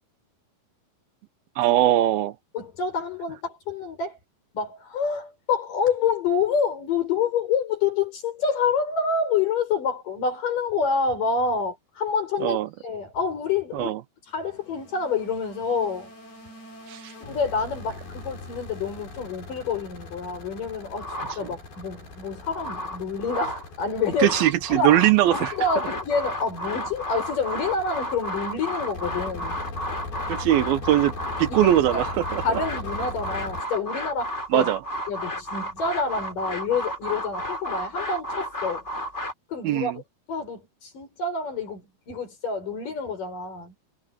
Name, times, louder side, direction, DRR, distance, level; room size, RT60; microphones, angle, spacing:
voice 1, 1.6-2.4 12.4-12.7 13.7-14.0 16.9-17.1 24.2-25.5 30.3-31.1 31.4-32.4 34.5-34.8 39.6-40.0, right 13 dB, 80° right, 2.9 m, -21 dB
voice 2, 2.5-4.2 4.5-12.6 12.8-13.9 14.3-16.1 17.2-21.1 21.4-24.3 24.7-25.0 25.3-29.6 31.5-32.0 32.4-34.7 35.1-38.8 39.5-40.0 40.3-43.8, left 5 dB, 60° left, 7.4 m, -27 dB
sound 1, 14.3-33.6, left 3 dB, 85° left, 9.2 m, -40 dB
sound 2, 21.0-21.8 22.3-23.7 24.0-39.3, equal, 20° left, 3.9 m, -32 dB
omnidirectional pair, 4.2 m